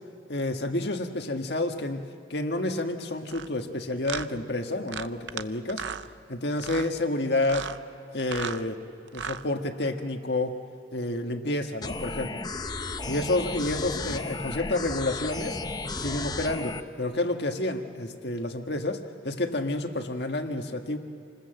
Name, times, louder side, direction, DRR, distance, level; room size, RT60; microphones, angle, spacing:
voice 1, 0.3-2.1 2.3-5.8 6.3-7.7 8.1-8.8 9.1-10.5 10.9-12.4 13.1-15.6 16.0-21.0, left 2 dB, 65° left, 5 dB, 1.6 m, -29 dB
sound 1, 3.3-3.5 4.0-4.3 4.9-5.4 5.7-6.1 6.6-6.9 7.4-7.8 8.2-8.6 9.1-9.4, right 7 dB, 80° right, 0.7 m, -35 dB
sound 2, 11.8-16.8, left 3 dB, 20° left, 0.7 m, -34 dB
28.0 x 20.5 x 7.9 m, 2.8 s
head